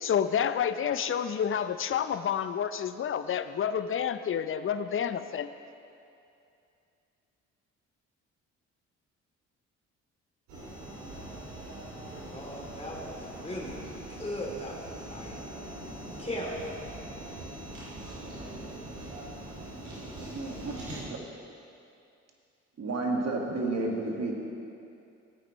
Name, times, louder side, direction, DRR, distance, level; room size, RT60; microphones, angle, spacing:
voice 1, 0.0-5.5, left 8 dB, 40° left, 11 dB, 0.6 m, -29 dB
sound 1, 10.5-21.0, right 1 dB, 85° right, 2.7 m, -42 dB
voice 2, 12.3-13.8 14.1-15.4 16.2-16.6, left 1 dB, 20° left, -3 dB, 2.8 m, -38 dB
voice 3, 20.3-20.7 21.0-21.2 22.8-24.3, right 2 dB, 50° right, 0 dB, 1.9 m, -31 dB
15.0 x 8.9 x 3.1 m, 2.6 s
hypercardioid pair, 55°, 33 cm